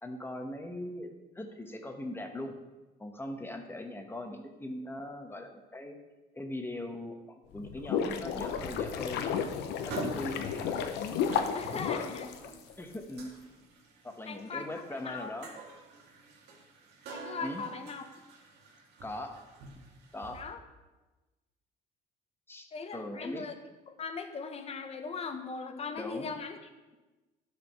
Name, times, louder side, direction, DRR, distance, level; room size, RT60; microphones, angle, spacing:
voice 1, 0.0-2.5 3.0-6.0 6.3-9.4 9.8-11.6 12.8-13.3 14.0-15.5 17.4-17.6 19.0-19.4 20.1-20.4 22.5-23.5 26.0-26.3, left 1 dB, 15° left, 4 dB, 1.3 m, -40 dB
sound 1, 7.5-12.9, left 7 dB, 85° left, 0.9 m, -33 dB
sound 2, 9.9-20.4, right 4 dB, 80° right, 2.3 m, -47 dB
voice 2, 11.5-12.4 14.3-15.3 17.1-18.1 20.3-20.6 22.7-23.5 23.9-26.6, left 5 dB, 35° left, 7 dB, 1.1 m, -39 dB
12.0 x 5.1 x 6.1 m, 1.2 s
cardioid pair, 110°, 17 cm